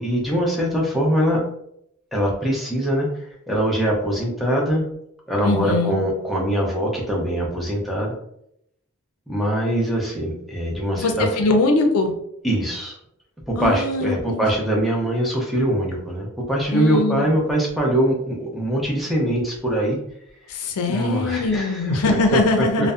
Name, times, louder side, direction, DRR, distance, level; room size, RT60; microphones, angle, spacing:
voice 1, 0.0-1.4 2.1-4.9 5.3-8.1 9.3-11.3 12.4-13.0 13.5-20.0 20.9-22.0 22.8-22.9, right 1 dB, ahead, -3 dB, 0.5 m, -22 dB
voice 2, 5.4-6.0 10.9-12.1 13.6-14.4 16.7-17.3 20.5-22.9, left 3 dB, 75° left, 4 dB, 0.4 m, -21 dB
2.5 x 2.1 x 2.3 m, 0.73 s
head